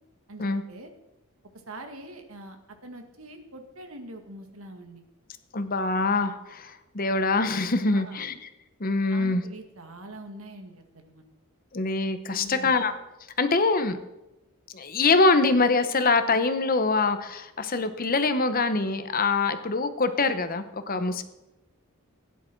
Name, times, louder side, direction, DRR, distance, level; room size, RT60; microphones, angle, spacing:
voice 1, 0.3-0.9 1.7-5.0 7.9-8.2 9.1-11.3 12.3-12.9 19.4-19.5 20.9-21.0, right 1 dB, 75° right, 6 dB, 1.9 m, -44 dB
voice 2, 5.5-8.5 8.8-9.4 11.7-12.9 13.4-14.0 14.7-21.2, left 3 dB, 40° left, 10 dB, 0.9 m, -24 dB
17.0 x 10.5 x 4.6 m, 0.97 s
head